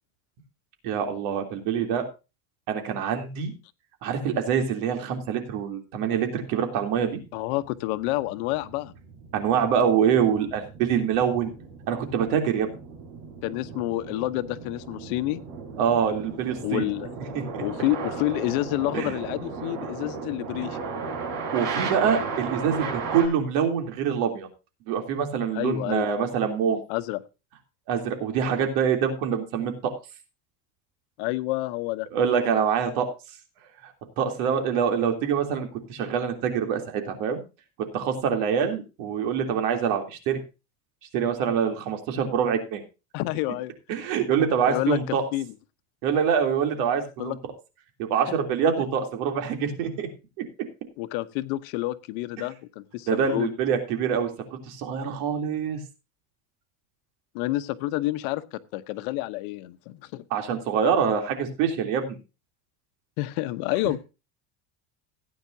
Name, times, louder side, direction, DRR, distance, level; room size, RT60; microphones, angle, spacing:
voice 1, 0.8-2.0 2.7-3.5 4.0-7.2 9.3-11.5 11.9-12.7 15.8-16.9 17.3-17.6 18.9-19.2 21.5-24.5 24.9-26.8 27.9-29.9 32.1-33.1 33.8-37.4 37.9-40.4 41.1-42.8 43.9-45.2 46.0-47.3 48.0-50.1 53.1-55.8 60.3-62.2, right 7 dB, 80° right, 5 dB, 3.3 m, -25 dB
voice 2, 7.3-8.9 13.4-15.4 16.6-17.1 17.6-20.8 25.5-26.1 26.9-27.2 31.2-32.1 43.1-43.7 44.7-45.0 45.3-45.5 47.2-47.4 48.8-48.9 51.0-53.5 57.3-60.2 63.2-64.0, left 17 dB, 85° left, 12 dB, 1.1 m, -29 dB
sound 1, 7.3-23.3, right 5 dB, 65° right, 6.2 m, -36 dB
17.0 x 9.6 x 2.7 m, 0.29 s
cardioid pair, 145°, 42 cm